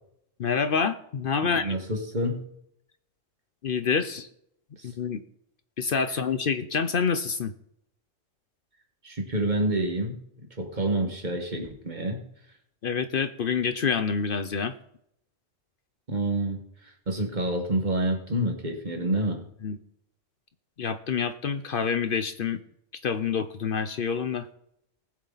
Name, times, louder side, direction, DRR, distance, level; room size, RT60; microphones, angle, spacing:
voice 1, 0.4-1.7 3.6-4.3 4.8-5.2 5.8-7.5 12.8-14.7 19.6-19.8 20.8-22.6 23.0-24.5, left 6 dB, 55° left, 10 dB, 0.9 m, -27 dB
voice 2, 1.4-2.5 4.8-4.9 9.0-12.2 16.1-16.6 17.1-19.4, right 1 dB, 40° right, 3 dB, 1.8 m, -28 dB
19.5 x 7.5 x 4.0 m, 0.74 s
omnidirectional pair, 1.1 m